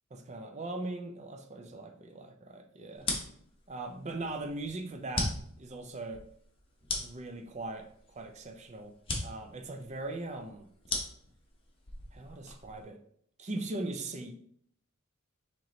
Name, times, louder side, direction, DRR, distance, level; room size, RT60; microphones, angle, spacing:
voice 1, 0.1-3.1 3.7-6.2 7.0-8.9 9.2-10.7 12.1-13.0 13.4-14.4, right 2 dB, 35° right, 6 dB, 0.5 m, -40 dB
sound 1, 2.9-12.8, left 2 dB, 25° left, 0.9 m, -39 dB
4.6 x 3.0 x 3.9 m, 0.67 s
head